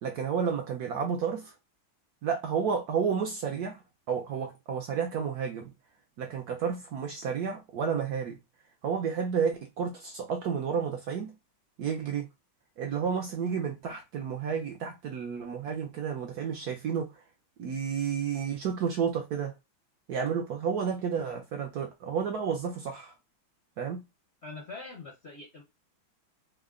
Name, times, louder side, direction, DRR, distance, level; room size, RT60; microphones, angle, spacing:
voice 1, 0.0-1.5 2.2-3.8 4.1-5.6 6.2-8.4 8.8-11.3 11.8-12.3 12.8-17.1 17.6-19.5 20.1-23.1 23.8-24.0, right 6 dB, 70° right, 0.9 m, -31 dB
voice 2, 24.4-25.6, left 3 dB, 60° left, 0.7 m, -43 dB
3.6 x 2.1 x 3.6 m
omnidirectional pair, 2.1 m